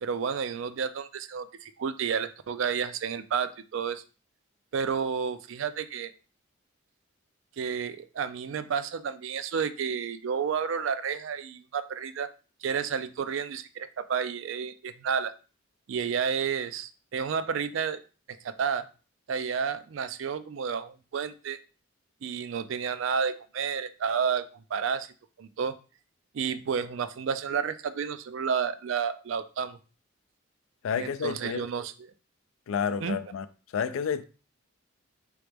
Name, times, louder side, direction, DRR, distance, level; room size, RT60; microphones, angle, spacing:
voice 1, 0.0-4.0 4.7-6.1 7.6-12.3 12.6-15.3 15.9-18.0 18.4-18.9 19.3-21.6 22.2-24.4 24.7-25.1 25.4-25.7 26.3-29.8 31.0-31.9 33.0-33.2, right 6 dB, 65° right, 0.4 m, -31 dB
voice 2, 30.8-31.6 32.7-33.5 33.7-34.2, left 7 dB, 80° left, 0.4 m, -30 dB
3.9 x 3.1 x 3.4 m
head